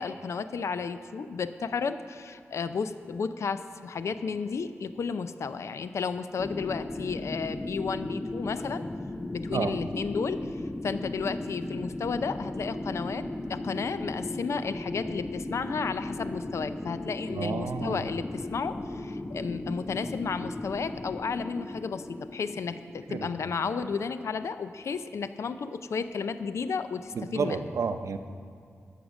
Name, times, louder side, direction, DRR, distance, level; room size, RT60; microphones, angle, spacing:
voice 1, 0.0-8.8 9.3-10.6 10.8-27.7, left 5 dB, 70° left, 11 dB, 0.5 m, -33 dB
sound 1, 6.4-24.0, left 1 dB, 15° left, 0.5 m, -36 dB
voice 2, 17.3-18.0 23.1-23.3 27.1-28.2, right 5 dB, 85° right, 9 dB, 0.6 m, -31 dB
13.5 x 6.6 x 6.3 m, 2.3 s
wide cardioid pair, 145°, 5 cm